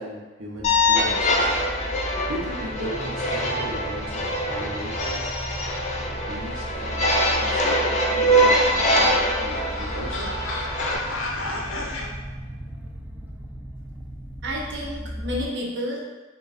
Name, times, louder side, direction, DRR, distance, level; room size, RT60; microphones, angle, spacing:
voice 1, 0.0-1.5 2.3-5.3 6.0-7.6 8.1-10.3 10.6-10.7, right 1 dB, 85° right, -4 dB, 1.0 m, -36 dB
sound 1, 0.6-10.9, equal, 35° left, 0.5 m, -23 dB
sound 2, 0.6-15.4, equal, 10° right, 0.4 m, -36 dB
sound 3, 8.5-12.1, left 2 dB, 80° left, 0.6 m, -33 dB
voice 2, 14.4-16.0, equal, 60° right, -3 dB, 0.8 m, -30 dB
3.7 x 2.4 x 4.0 m, 1.2 s
head